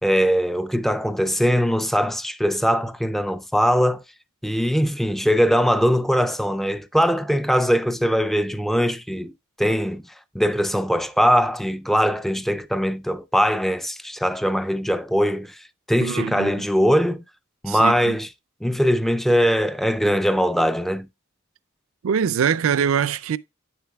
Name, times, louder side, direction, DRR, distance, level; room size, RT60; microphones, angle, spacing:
voice 1, 0.0-4.0 4.4-9.3 9.6-10.0 10.3-17.2 17.6-18.3 18.6-21.1, equal, ahead, 0.3 m, -21 dB
voice 2, 16.0-16.5 17.7-18.2 22.0-23.4, right 7 dB, 70° right, 0.4 m, -23 dB
9.1 x 6.9 x 2.3 m
head